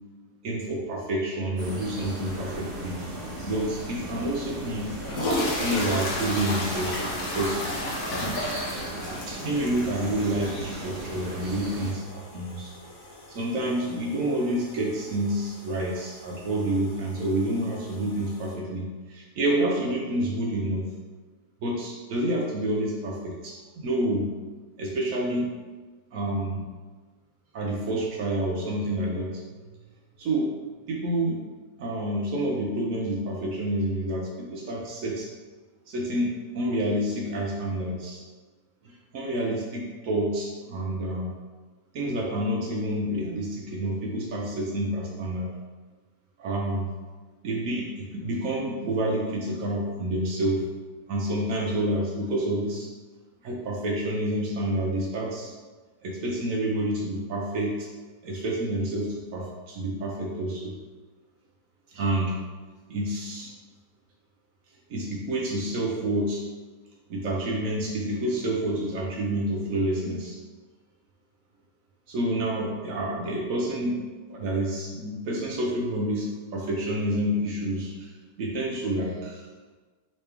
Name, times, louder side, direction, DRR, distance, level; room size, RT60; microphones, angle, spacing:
voice 1, 0.4-3.0 3.4-4.9 5.6-7.7 8.7-12.7 13.3-20.9 21.6-24.3 24.8-25.5 26.1-26.7 27.5-29.4 30.2-30.5 30.9-31.4 31.8-35.3 35.9-38.2 38.8-41.3 41.9-45.5 46.4-46.9 47.4-50.7 51.1-52.9 53.4-55.5 56.0-57.9 58.2-60.7 61.9-62.4 62.9-63.5 64.9-66.4 67.1-70.4 72.1-74.0 74.3-78.1 78.4-79.5, right 1 dB, 65° right, -2 dB, 0.9 m, -28 dB
sound 1, 1.6-11.9, right 1 dB, 50° right, 1.2 m, -37 dB
sound 2, 4.2-4.3 4.9-18.5, left 1 dB, 65° left, 1.1 m, -35 dB
3.2 x 3.0 x 3.3 m, 1.3 s
omnidirectional pair, 1.7 m